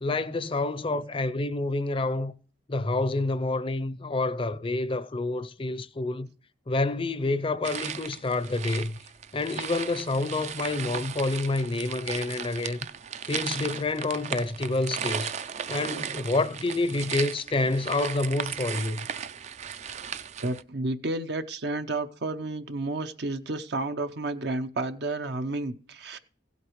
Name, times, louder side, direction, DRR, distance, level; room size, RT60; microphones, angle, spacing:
voice 1, 0.0-2.3 2.7-6.3 6.7-9.0 9.3-12.8 13.3-19.1, left 2 dB, 30° left, 0.5 m, -28 dB
sound 1, 7.6-20.6, right 7 dB, 40° right, 0.4 m, -36 dB
voice 2, 20.4-26.2, right 2 dB, 65° right, 0.7 m, -31 dB
16.0 x 8.1 x 3.1 m
head